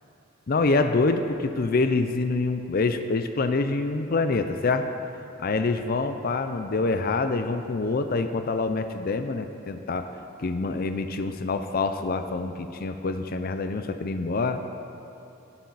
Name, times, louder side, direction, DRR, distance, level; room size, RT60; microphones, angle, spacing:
voice 1, 0.5-4.9 5.4-10.1 10.4-14.6, left 3 dB, 45° left, 8 dB, 0.5 m, -26 dB
17.0 x 8.4 x 4.0 m, 2.8 s
head